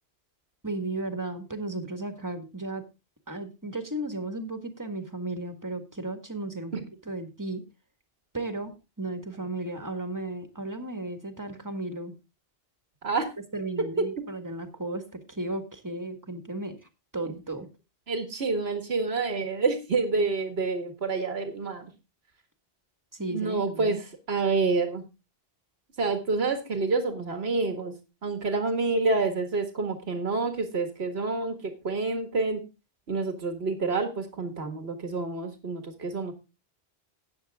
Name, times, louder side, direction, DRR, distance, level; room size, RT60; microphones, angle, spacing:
voice 1, 0.6-2.9 3.3-7.6 8.3-12.2 13.5-17.7 23.1-23.9, right 2 dB, 20° right, 8 dB, 1.6 m, -35 dB
voice 2, 18.1-21.9 23.3-24.0 24.3-25.0 26.0-27.9 28.2-32.6 33.1-36.3, right 3 dB, 85° right, 7 dB, 2.1 m, -28 dB
13.5 x 9.0 x 3.5 m, 0.27 s
omnidirectional pair, 1.0 m